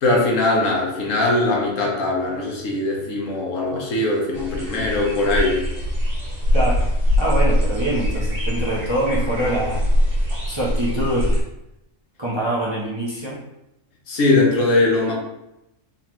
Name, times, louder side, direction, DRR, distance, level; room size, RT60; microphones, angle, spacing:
voice 1, 0.0-5.6 14.1-15.1, left 2 dB, 80° left, -1 dB, 1.3 m, -20 dB
sound 1, 4.3-11.4, left 1 dB, 80° right, 1.5 m, -22 dB
voice 2, 6.5-6.9 7.2-9.8 10.5-11.4 12.2-13.4, right 1 dB, 25° right, -7 dB, 0.6 m, -24 dB
3.8 x 3.1 x 2.9 m, 0.87 s
omnidirectional pair, 1.3 m